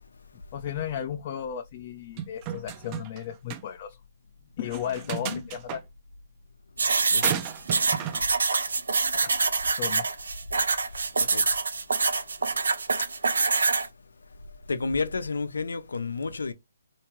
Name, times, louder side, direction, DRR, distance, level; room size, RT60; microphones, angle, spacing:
voice 1, 0.5-4.0 4.6-5.8 9.1-9.3 9.8-10.1, left 9 dB, 40° left, 0.5 m, -34 dB
sound 1, 2.2-3.2 3.5-3.6 4.7-5.8 7.2-8.2, right 10 dB, 30° right, 0.6 m, -34 dB
voice 2, 5.1-5.5 7.1-7.4 11.3-11.5 14.7-16.5, left 4 dB, 85° left, 0.6 m, -31 dB
sound 2, 6.8-13.9, right 4 dB, 80° right, 0.6 m, -25 dB
3.4 x 2.7 x 3.0 m
hypercardioid pair, 150°, 0 cm